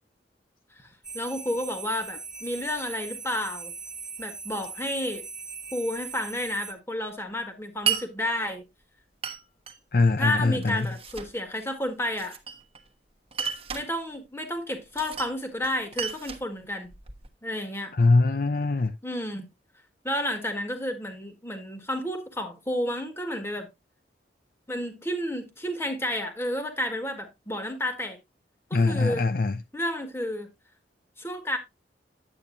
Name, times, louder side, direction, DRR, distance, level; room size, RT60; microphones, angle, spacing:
voice 1, 0.7-3.7 4.2-5.2 5.7-8.6 10.2-12.4 13.7-16.9 17.4-17.9 19.0-19.5 20.0-23.7 24.7-28.2 28.7-29.3 29.7-30.5 31.2-31.6, left 1 dB, 15° left, 1.7 m, -31 dB
sound 1, 1.0-6.7, right 5 dB, 5° right, 1.6 m, -40 dB
Glass, 7.9-8.1 9.2-9.8 10.6-11.3 12.2-12.9 13.3-13.9 14.9-15.4 15.6-17.3, right 7 dB, 35° right, 1.2 m, -32 dB
voice 2, 9.9-10.9 17.9-19.0 28.7-29.6, left 3 dB, 55° left, 0.5 m, -22 dB
10.0 x 8.6 x 2.6 m
head